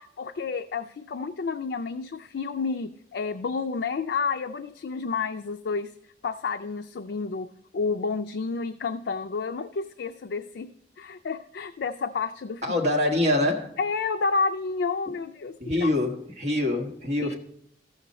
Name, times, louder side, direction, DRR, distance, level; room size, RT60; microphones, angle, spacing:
voice 1, 0.0-5.9 6.2-7.5 7.7-10.7 11.0-12.8 13.8-15.9 17.2-17.3, left 4 dB, 65° left, 0.4 m, -30 dB
voice 2, 12.6-13.8 15.6-17.3, left 1 dB, 40° right, 1.3 m, -25 dB
14.0 x 6.5 x 4.1 m
head